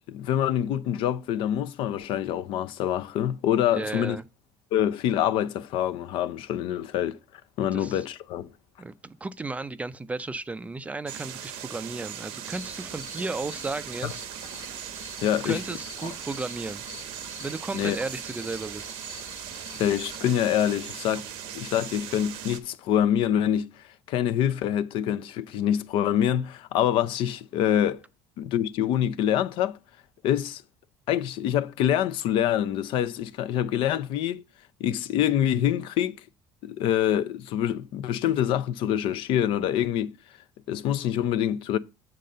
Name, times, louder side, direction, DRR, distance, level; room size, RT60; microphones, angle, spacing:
voice 1, 0.1-4.2 4.7-7.2 7.6-8.5 14.0-14.1 15.2-15.6 16.0-16.1 17.7-18.0 19.8-21.3 21.5-23.7 24.1-28.0 28.4-29.8 30.2-30.6 31.1-34.4 34.8-36.2 36.6-40.1 40.7-41.8, left 10 dB, 70° left, 0.5 m, -25 dB
voice 2, 3.7-4.3 7.7-8.0 8.8-14.2 15.4-16.8 17.4-19.0, right 3 dB, 15° right, 0.4 m, -34 dB
sound 1, 11.1-22.6, right 9 dB, 85° right, 0.9 m, -39 dB
sound 2, 12.5-20.2, left 4 dB, 20° left, 1.3 m, -46 dB
7.5 x 3.9 x 6.6 m
cardioid pair, 115°, 9 cm